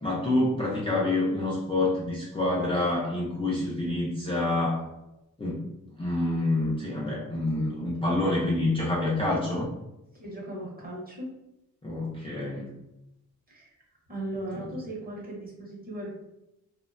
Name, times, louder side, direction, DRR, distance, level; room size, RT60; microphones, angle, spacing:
voice 1, 0.0-4.9 5.4-5.6 6.0-9.7 11.8-12.7, left 2 dB, 20° left, -6 dB, 0.3 m, -27 dB
voice 2, 10.2-11.3 13.5-13.7 14.1-16.2, right 1 dB, 30° right, -4 dB, 0.8 m, -37 dB
2.6 x 2.1 x 2.4 m, 0.88 s
wide cardioid pair, 160°, 32 cm